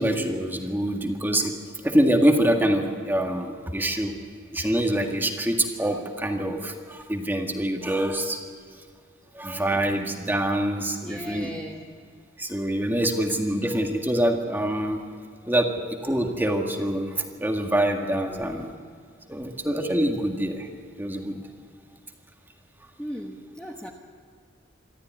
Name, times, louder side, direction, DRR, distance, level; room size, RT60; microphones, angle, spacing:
voice 1, 0.0-1.5 1.8-4.1 4.5-8.4 9.3-11.5 12.4-15.0 15.5-18.6 19.3-20.7 21.0-21.4, right 1 dB, 10° right, 3 dB, 1.9 m, -25 dB
voice 2, 11.0-11.9 18.2-18.8 21.3-21.5 21.9-22.0 23.0-23.9, equal, 5° left, -1 dB, 1.3 m, -38 dB
26.5 x 13.0 x 9.5 m, 2.2 s
head